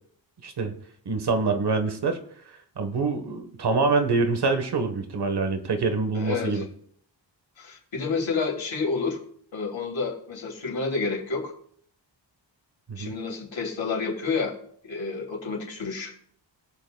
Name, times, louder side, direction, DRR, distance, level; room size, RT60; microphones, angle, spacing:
voice 1, 0.4-0.7 1.0-2.2 2.8-6.6 12.9-13.1, right 4 dB, 60° right, 7 dB, 1.3 m, -25 dB
voice 2, 6.1-6.6 7.6-9.2 9.5-11.5 13.0-14.5 14.8-16.1, left 4 dB, 85° left, -2 dB, 3.2 m, -29 dB
21.0 x 7.9 x 2.3 m, 0.62 s
wide cardioid pair, 180°, 46 cm